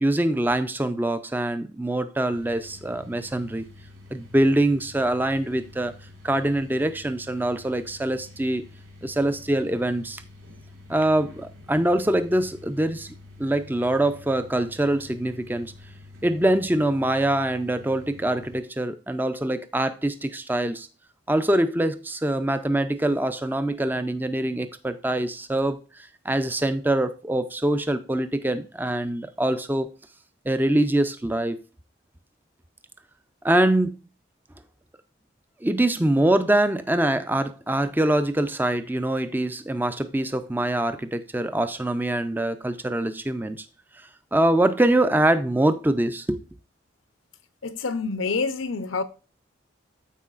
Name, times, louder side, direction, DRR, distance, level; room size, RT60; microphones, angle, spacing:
voice 1, 0.0-3.7 4.1-5.9 6.2-8.7 9.0-10.2 10.9-15.7 16.2-20.9 21.3-29.9 30.5-31.6 33.4-34.0 35.6-43.6 44.3-46.4, right 1 dB, 10° right, 0.4 m, -24 dB
sound 1, 2.3-18.6, left 2 dB, 80° right, 3.6 m, -47 dB
voice 2, 47.6-49.0, left 4 dB, 80° left, 0.8 m, -27 dB
14.0 x 4.7 x 2.5 m
head